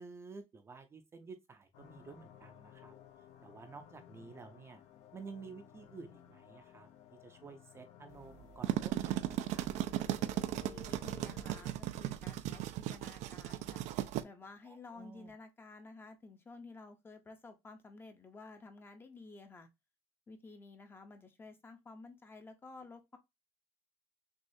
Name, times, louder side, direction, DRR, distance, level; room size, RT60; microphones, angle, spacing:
voice 1, 0.0-2.9 3.4-4.8 5.1-10.2 14.6-15.3, right 4 dB, 20° right, 0.5 m, -52 dB
sound 1, 1.7-11.7, left 10 dB, 65° left, 0.6 m, -57 dB
sound 2, 8.4-14.2, right 13 dB, 80° right, 0.4 m, -36 dB
voice 2, 10.6-13.9 14.2-19.7 20.3-23.2, left 3 dB, 20° left, 0.6 m, -53 dB
6.2 x 2.4 x 2.6 m
cardioid pair, 175°, 12 cm